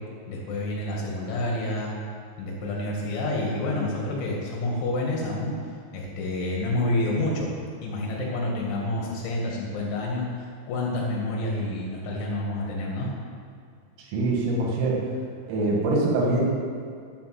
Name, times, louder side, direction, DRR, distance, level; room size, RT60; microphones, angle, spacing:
voice 1, 0.3-1.9 2.4-5.5 5.9-7.6 7.8-13.1, left 2 dB, 70° left, -2 dB, 4.3 m, -28 dB
voice 2, 14.0-15.0 15.5-16.4, right 2 dB, 90° right, -2 dB, 4.6 m, -24 dB
11.0 x 7.5 x 7.7 m, 2.3 s
omnidirectional pair, 5.8 m